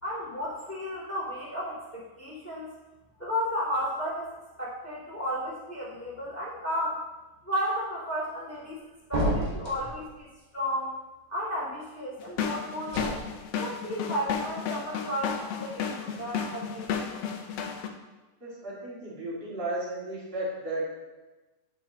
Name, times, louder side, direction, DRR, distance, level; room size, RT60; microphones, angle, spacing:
voice 1, 0.0-2.7 3.2-7.0 7.4-8.8 9.1-10.3 10.5-11.0 11.3-13.0 13.6-17.1, equal, 5° left, -9 dB, 1.9 m, -33 dB
sound 1, 9.1-10.0 12.9-13.2, right 1 dB, 60° right, 0.4 m, -29 dB
sound 2, 12.2-17.9, left 6 dB, 80° left, 1.3 m, -33 dB
voice 2, 18.4-20.8, right 1 dB, 20° right, -8 dB, 1.8 m, -34 dB
9.6 x 7.6 x 2.9 m, 1.1 s
omnidirectional pair, 3.6 m